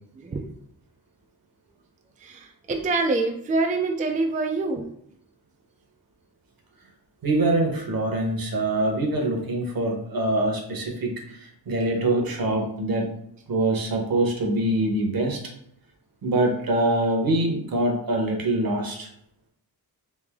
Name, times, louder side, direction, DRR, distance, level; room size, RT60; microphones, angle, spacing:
voice 1, 2.2-4.9, right 3 dB, 20° right, 3 dB, 0.3 m, -25 dB
voice 2, 7.2-13.1 13.5-15.4 16.2-19.1, right 2 dB, 60° right, 2 dB, 0.9 m, -24 dB
3.3 x 2.6 x 3.5 m, 0.72 s
wide cardioid pair, 110°, 39 cm